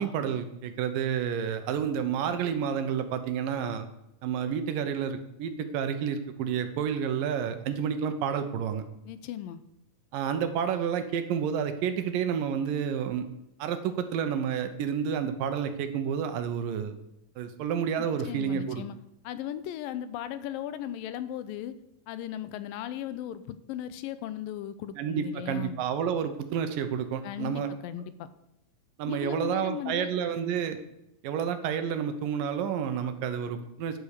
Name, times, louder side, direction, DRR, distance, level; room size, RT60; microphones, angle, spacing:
voice 1, 0.0-3.9 4.2-8.8 10.1-13.3 13.6-16.9 17.4-18.8 25.0-27.7 29.0-30.8 31.2-34.0, right 8 dB, 75° right, 9 dB, 2.6 m, -30 dB
voice 2, 9.0-9.6 18.0-19.0 19.2-21.7 22.1-25.8 27.2-28.3 29.1-30.1, left 11 dB, 85° left, 13 dB, 2.4 m, -37 dB
10.5 x 8.2 x 6.6 m, 0.87 s
omnidirectional pair, 4.1 m